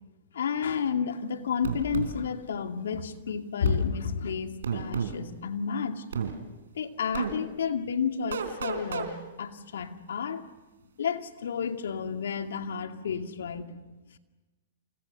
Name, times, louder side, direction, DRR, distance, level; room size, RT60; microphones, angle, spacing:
voice 1, 0.3-6.0 6.8-10.4 11.0-13.7, left 6 dB, 80° left, 6 dB, 2.4 m, -31 dB
sound 1, 1.6-2.1 3.6-3.8 4.6-5.2 6.1-6.3 7.1-7.3 8.3-9.1, right 7 dB, 80° right, 3.9 m, -30 dB
29.0 x 28.5 x 6.8 m, 1.1 s
hypercardioid pair, 130°, 0 cm